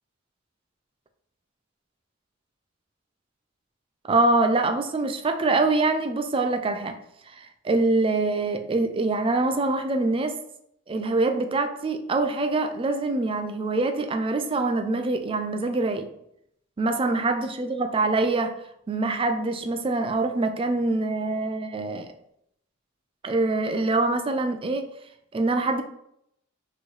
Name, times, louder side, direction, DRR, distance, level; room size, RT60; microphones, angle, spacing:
voice 1, 4.0-7.0 7.3-10.4 10.9-16.1 16.8-18.6 18.9-22.1 23.2-24.9 25.3-25.8, right 2 dB, 30° right, 0.4 m, -24 dB
4.3 x 3.1 x 3.2 m
head